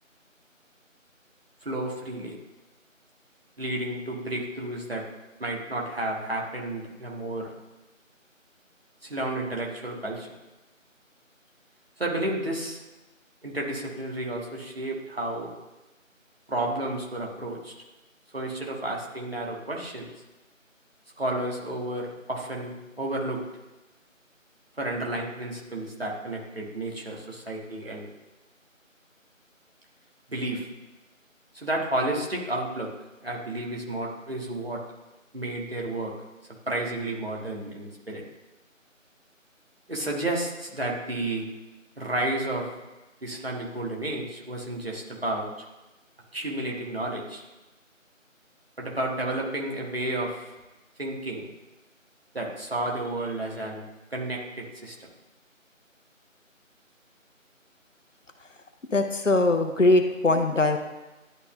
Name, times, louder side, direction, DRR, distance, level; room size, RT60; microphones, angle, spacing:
voice 1, 1.6-2.3 3.6-5.1 5.4-7.5 9.0-10.3 12.0-12.8 13.4-15.5 16.5-17.7 18.3-20.1 21.2-23.4 24.8-28.1 30.3-30.7 31.5-32.9 33.2-34.8 35.3-36.1 36.7-38.2 39.9-41.5 42.0-42.7 43.2-45.5 46.3-47.4 48.8-50.5 51.0-51.5 52.3-53.8 54.1-54.9, right 1 dB, 45° right, -2 dB, 1.5 m, -31 dB
voice 2, 58.9-60.8, left 2 dB, 70° left, 6 dB, 0.8 m, -21 dB
11.0 x 3.9 x 2.5 m, 1.1 s
figure-of-eight pair, 170°, 40 cm